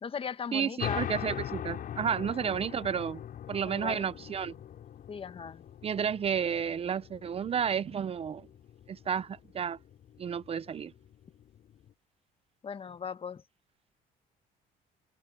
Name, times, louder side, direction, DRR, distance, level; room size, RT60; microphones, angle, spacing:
voice 1, 0.0-1.1 3.6-4.1 5.1-5.6 12.6-13.4, left 6 dB, 35° left, 1.2 m, -38 dB
voice 2, 0.5-3.2 3.5-4.5 5.8-8.5 8.9-9.8 10.2-10.9, right 7 dB, 35° right, 0.6 m, -31 dB
sound 1, 0.8-11.9, left 10 dB, 60° left, 6.7 m, -42 dB
cardioid pair, 110°, 17 cm